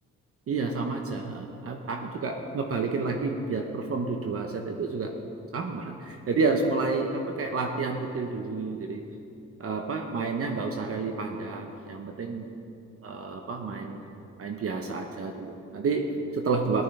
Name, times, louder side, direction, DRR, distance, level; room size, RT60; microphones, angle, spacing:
voice 1, 0.5-5.1 5.5-9.0 9.6-12.4 13.0-14.0 14.4-16.1 16.3-16.8, right 4 dB, 50° right, 3 dB, 1.0 m, -30 dB
16.0 x 12.0 x 3.3 m, 2.8 s
cardioid pair, 90°, 30 cm